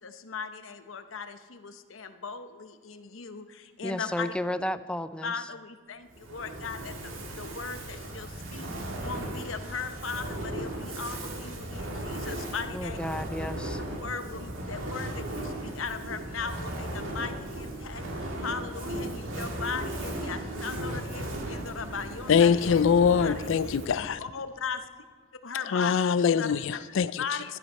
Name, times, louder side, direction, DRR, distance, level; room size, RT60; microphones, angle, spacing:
voice 1, 0.0-4.3 5.2-13.0 14.0-23.5 24.2-24.9 25.4-26.5 27.2-27.4, left 5 dB, 85° left, 9 dB, 0.9 m, -38 dB
voice 2, 3.8-5.5 12.7-13.8, left 1 dB, 5° left, 12 dB, 0.4 m, -33 dB
Fire, 6.1-24.1, right 1 dB, 75° right, 2.2 m, -36 dB
voice 3, 22.3-24.2 25.7-27.4, left 6 dB, 65° left, 15 dB, 0.4 m, -23 dB
13.0 x 11.0 x 5.5 m, 1.5 s
head